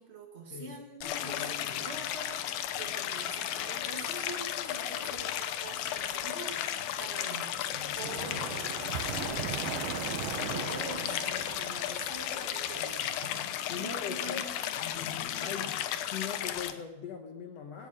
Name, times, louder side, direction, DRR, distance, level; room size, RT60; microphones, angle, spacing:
voice 1, 0.0-7.6 7.9-13.1 13.7-14.5 14.8-15.7, right 3 dB, 40° right, 0 dB, 0.8 m, -45 dB
voice 2, 0.5-0.8 12.8-13.0 13.6-14.5 15.4-15.7 16.0-17.9, left 8 dB, 70° left, 5 dB, 1.6 m, -40 dB
Stream, 1.0-16.7, left 10 dB, 90° left, 2.8 m, -34 dB
sound 1, 7.7-13.3, right 9 dB, 90° right, 2.9 m, -39 dB
17.0 x 11.5 x 6.5 m, 1.1 s
omnidirectional pair, 4.2 m